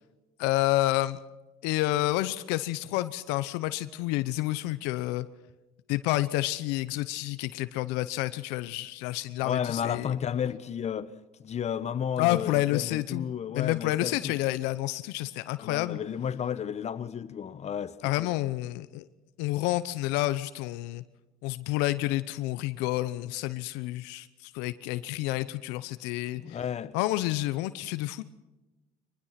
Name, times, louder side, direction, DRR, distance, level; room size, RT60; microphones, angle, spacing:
voice 1, 0.4-1.2 1.6-5.3 5.9-10.1 12.2-13.3 13.5-16.0 18.0-19.1 19.4-21.0 21.4-26.6 26.9-28.2, left 17 dB, 80° left, 0.9 m, -29 dB
voice 2, 9.4-11.1 11.4-14.4 15.6-18.3 26.4-27.0, left 8 dB, 40° left, 1.2 m, -33 dB
23.5 x 20.5 x 5.9 m
supercardioid pair, 85°, 17 cm